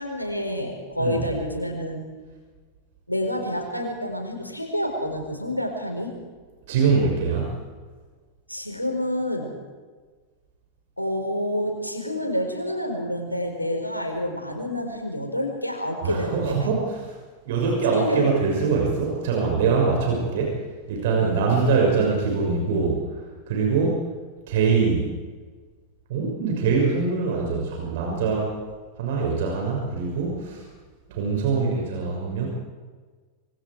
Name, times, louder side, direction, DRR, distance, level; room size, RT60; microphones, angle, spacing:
voice 1, 0.0-2.1 3.1-6.1 8.5-9.5 11.0-16.7 17.9-18.3 21.2-21.4, left 1 dB, 90° left, 3 dB, 4.7 m, -28 dB
voice 2, 6.7-7.6 16.0-17.1 17.4-24.0 24.5-25.1 26.1-28.6 29.0-30.7 31.1-32.5, right 4 dB, 55° right, -1 dB, 6.2 m, -23 dB
26.0 x 24.5 x 4.9 m, 1.4 s
figure-of-eight pair, 90°, 0 cm